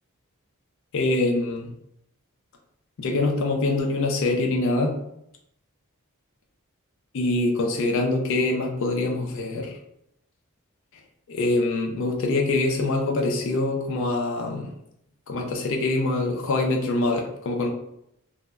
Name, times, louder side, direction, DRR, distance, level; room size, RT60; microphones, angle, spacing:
voice 1, 0.9-1.7 3.0-5.0 7.1-9.8 11.3-14.7 15.3-17.7, left 2 dB, 60° left, 1 dB, 0.4 m, -24 dB
2.0 x 2.0 x 3.4 m, 0.77 s
head